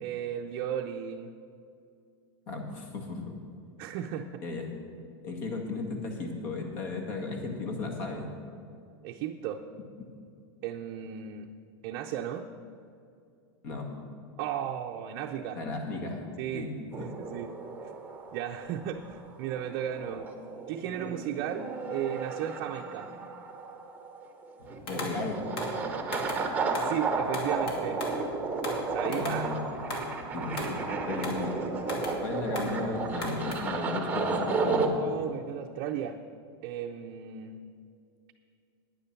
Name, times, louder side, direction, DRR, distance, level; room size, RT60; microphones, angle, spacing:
voice 1, 0.0-1.3 3.8-4.4 9.0-9.6 10.6-11.5 11.8-12.5 14.4-15.6 16.4-16.7 17.0-17.5 18.3-20.3 20.7-23.1 26.7-28.0 28.9-29.5 35.0-36.2 36.6-37.6, right 10 dB, 45° right, 2 dB, 0.5 m, -35 dB
voice 2, 2.5-3.3 4.4-4.7 5.2-8.3 13.6-13.9 15.6-16.2 16.5-17.1 24.9-25.4 29.1-29.6 30.3-30.8 31.1-31.6 32.2-35.0, left 3 dB, 50° left, 2 dB, 2.0 m, -35 dB
sound 1, 16.9-34.9, right 4 dB, 10° right, 0.9 m, -33 dB
sound 2, 24.6-33.6, left 1 dB, 70° left, 2.4 m, -39 dB
9.7 x 9.7 x 5.8 m, 2.4 s
supercardioid pair, 155°, 13 cm